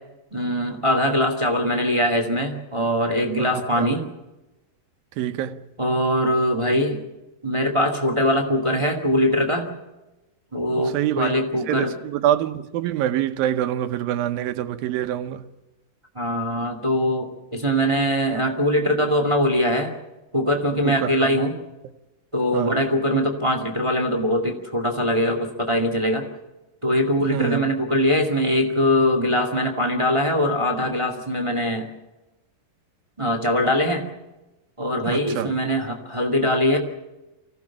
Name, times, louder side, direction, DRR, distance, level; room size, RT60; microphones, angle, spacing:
voice 1, 0.3-4.0 5.8-7.0 7.4-9.7 10.5-11.9 16.1-19.9 20.3-21.5 22.3-26.3 26.8-31.9 33.2-34.0 34.8-36.8, equal, 10° right, 1.5 m, -22 dB
voice 2, 5.2-5.7 10.8-11.4 11.7-15.5 20.8-21.3 22.5-22.7 27.3-27.6 35.1-35.5, right 12 dB, 85° right, 2.7 m, -25 dB
25.0 x 17.0 x 7.2 m
omnidirectional pair, 4.0 m